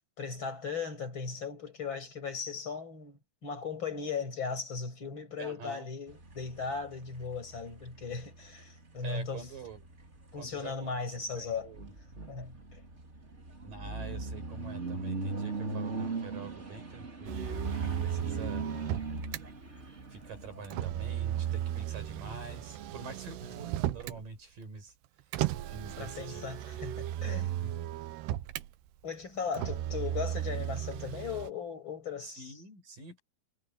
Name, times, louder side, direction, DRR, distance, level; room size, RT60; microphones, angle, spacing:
voice 1, 0.2-9.5 10.3-11.7 12.3-12.8 26.0-27.5 29.0-32.5, left 5 dB, 25° left, 6.5 m, -37 dB
voice 2, 5.4-5.9 9.0-9.9 10.3-11.9 13.6-18.7 20.1-24.9 25.7-26.5 27.3-27.9 32.2-33.2, right 4 dB, 50° right, 6.8 m, -46 dB
sound 1, 6.1-23.2, right 3 dB, 20° right, 2.1 m, -41 dB
Motor vehicle (road), 17.3-19.4 20.6-24.2 25.3-28.7 29.5-31.5, right 13 dB, 75° right, 2.9 m, -35 dB
omnidirectional pair, 5.2 m